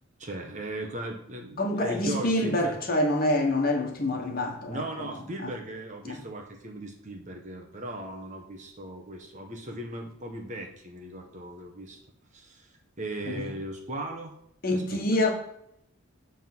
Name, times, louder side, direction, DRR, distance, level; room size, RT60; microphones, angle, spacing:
voice 1, 0.2-2.8 4.7-12.0 12.3-12.7 13.0-14.3 14.7-15.3, right 1 dB, 35° right, 2 dB, 1.2 m, -38 dB
voice 2, 1.6-5.1 5.4-5.5 6.1-6.2 13.2-13.5 14.6-15.3, left 1 dB, 45° left, 2 dB, 1.5 m, -26 dB
8.2 x 3.7 x 6.1 m, 0.74 s
head